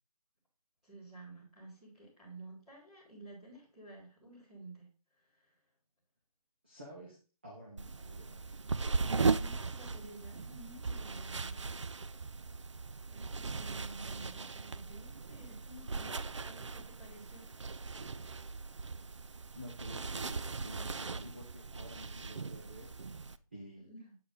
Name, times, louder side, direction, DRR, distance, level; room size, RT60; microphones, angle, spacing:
voice 1, 0.8-4.9 5.1-5.6 8.9-11.7 13.1-17.5 20.9-21.1 23.8-24.1, right 2 dB, ahead, -13 dB, 1.6 m, -52 dB
voice 2, 6.6-7.2 7.4-8.6 19.5-23.9, equal, 20° right, -3 dB, 0.7 m, -51 dB
sound 1, 7.8-23.4, right 4 dB, 55° right, 0.4 m, -38 dB
8.1 x 4.9 x 3.7 m, 0.36 s
figure-of-eight pair, 175°, 19 cm